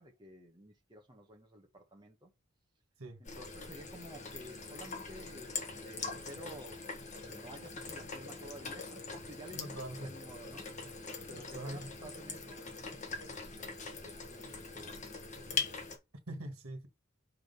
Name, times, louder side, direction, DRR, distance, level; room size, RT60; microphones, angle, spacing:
voice 1, 0.0-2.3 3.4-6.9 7.3-13.0 13.3-13.8 14.0-15.1, equal, 20° right, 1.2 m, -52 dB
sound 1, 3.2-16.0, left 4 dB, 35° left, 1.3 m, -42 dB
voice 2, 9.5-10.1 11.2-11.9 16.3-16.9, right 1 dB, 85° right, 1.7 m, -43 dB
6.4 x 3.8 x 5.3 m
head